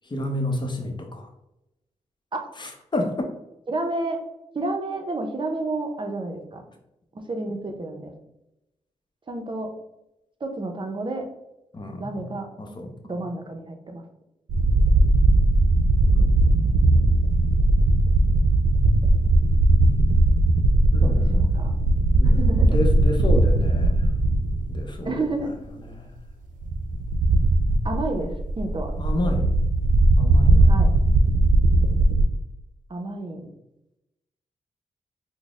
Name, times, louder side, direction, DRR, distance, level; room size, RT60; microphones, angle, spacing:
voice 1, 0.1-1.3 2.6-3.1 11.7-12.3 12.6-12.9 16.1-16.6 20.9-21.5 22.1-24.0 24.7-25.1 26.0-26.1 29.0-29.6 30.2-30.7, left 1 dB, 35° left, 3 dB, 0.7 m, -29 dB
voice 2, 3.7-4.2 4.5-6.7 7.1-8.1 9.3-9.7 10.4-11.3 12.0-12.5 13.1-14.0 21.0-21.7 22.2-22.8 25.0-25.5 27.8-28.9 30.7-30.9 32.9-33.5, right 2 dB, 40° right, 5 dB, 0.6 m, -30 dB
sound 1, 14.5-25.1 25.4-25.5 26.6-32.2, right 2 dB, 80° right, 0.5 m, -19 dB
4.0 x 2.0 x 3.5 m, 0.89 s
cardioid pair, 70°, 13 cm